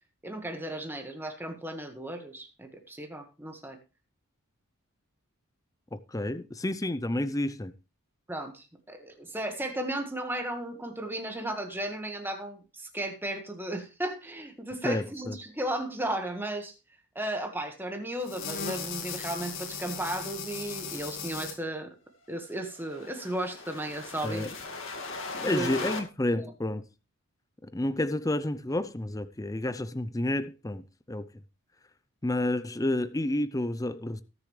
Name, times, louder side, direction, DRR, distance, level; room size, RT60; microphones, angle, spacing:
voice 1, 0.2-3.8 8.3-16.7 17.1-21.9 22.3-24.4 25.4-25.9 26.3-26.5, right 1 dB, 10° right, 1.5 m, -35 dB
voice 2, 5.9-7.7 14.8-15.4 24.2-24.5 25.4-26.9 27.6-31.3 32.2-34.2, left 1 dB, 15° left, 0.5 m, -30 dB
sound 1, 18.2-21.5 22.7-26.0, left 4 dB, 60° left, 2.1 m, -38 dB
19.5 x 6.9 x 3.2 m
head